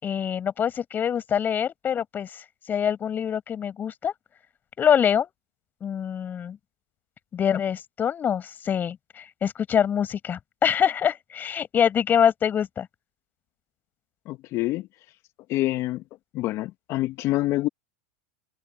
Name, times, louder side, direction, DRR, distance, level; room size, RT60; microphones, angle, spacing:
voice 1, 0.0-2.4 2.7-4.1 4.8-5.3 5.8-6.6 7.3-12.9, left 8 dB, 30° left, 7.1 m, -25 dB
voice 2, 14.3-14.9 15.5-16.0 16.3-17.7, left 17 dB, 45° left, 2.0 m, -26 dB
hypercardioid pair, 105°, 7 cm